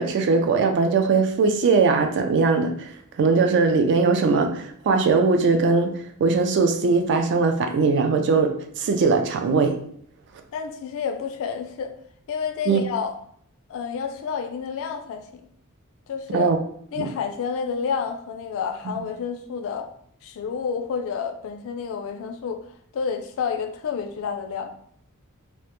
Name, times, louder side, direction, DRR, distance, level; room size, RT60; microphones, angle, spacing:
voice 1, 0.0-2.7 3.2-5.9 6.2-9.8 12.7-12.8 16.3-16.6 17.0-17.1 18.9-19.0, right 4 dB, 50° right, 5 dB, 0.3 m, -20 dB
voice 2, 10.5-11.9 12.3-13.1 13.7-15.4 16.1-16.5 16.9-19.9 20.2-22.6 22.9-24.7, left 6 dB, 60° left, 6 dB, 0.3 m, -29 dB
2.1 x 2.0 x 2.9 m, 0.65 s
head